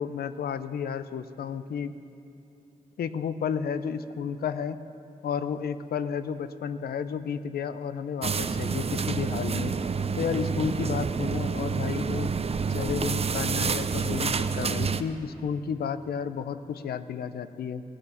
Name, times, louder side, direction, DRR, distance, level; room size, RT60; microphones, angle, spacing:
voice 1, 0.0-1.9 3.0-4.8 5.2-9.7 10.2-12.3 12.7-17.8, left 7 dB, 90° left, 13 dB, 0.6 m, -32 dB
sound 1, 8.2-15.0, right 5 dB, 40° right, 0.5 m, -28 dB
18.0 x 8.4 x 7.1 m, 2.7 s
cardioid pair, 80°, 16 cm